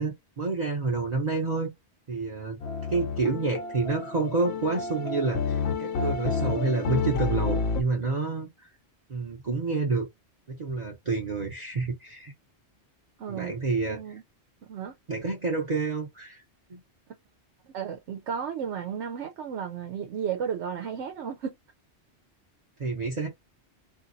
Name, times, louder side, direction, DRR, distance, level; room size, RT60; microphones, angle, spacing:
voice 1, 0.0-1.7 2.1-2.6 2.9-8.7 9.1-10.1 10.5-12.3 13.3-14.2 15.1-16.4 16.7-16.8 22.8-23.3, right 3 dB, 40° right, 0.8 m, -29 dB
sound 1, 2.6-7.8, left 5 dB, 75° left, 0.9 m, -30 dB
voice 2, 13.2-13.5 13.9-14.2 14.6-14.9 17.6-21.6, right 7 dB, 85° right, 1.0 m, -33 dB
3.9 x 2.7 x 2.6 m
omnidirectional pair, 1.1 m